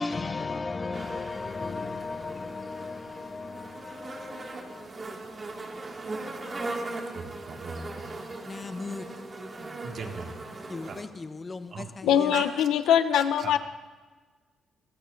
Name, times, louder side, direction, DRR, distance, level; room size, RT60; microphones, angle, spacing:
voice 1, 0.0-4.9 6.2-6.3 6.6-6.7 8.5-9.7 10.7-12.4, left 3 dB, 30° left, 0.8 m, -36 dB
sound 1, 0.9-11.0, right 2 dB, 35° right, 2.1 m, -39 dB
voice 2, 7.1-8.2 9.8-10.4 10.9-11.0 11.7-11.9 12.3-12.4, right 4 dB, 55° right, 1.9 m, -38 dB
voice 3, 12.0-13.6, left 9 dB, 85° left, 0.8 m, -22 dB
22.0 x 19.0 x 2.6 m
cardioid pair, 90°, 0 cm